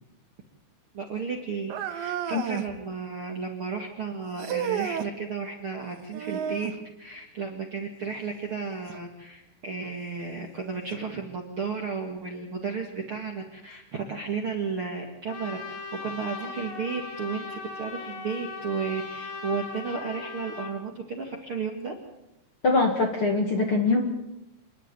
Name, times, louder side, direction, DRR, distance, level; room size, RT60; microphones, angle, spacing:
voice 1, 0.9-6.7 7.0-21.9, right 5 dB, 45° right, 1 dB, 1.8 m, -33 dB
sound 1, 1.7-2.7 4.4-5.1 6.1-6.8 8.9-9.0 9.8-9.9 10.9-11.0, right 9 dB, 85° right, 3.5 m, -31 dB
Trumpet, 15.3-20.7, left 4 dB, 85° left, 4.9 m, -38 dB
voice 2, 22.6-24.0, left 3 dB, 40° left, 2 dB, 2.2 m, -23 dB
27.5 x 11.0 x 9.2 m, 0.92 s
omnidirectional pair, 5.1 m